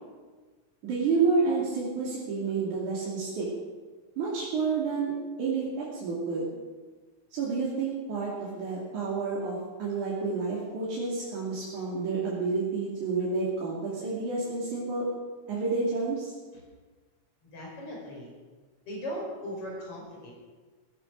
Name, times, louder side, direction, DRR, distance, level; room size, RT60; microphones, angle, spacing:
voice 1, 0.8-3.5 4.2-5.1 5.4-6.5 7.3-15.1 15.5-16.3, right 4 dB, 80° right, -7 dB, 4.2 m, -29 dB
voice 2, 17.5-18.3 18.9-20.3, equal, 50° left, -3 dB, 6.1 m, -38 dB
17.0 x 11.0 x 6.5 m, 1.4 s
omnidirectional pair, 3.4 m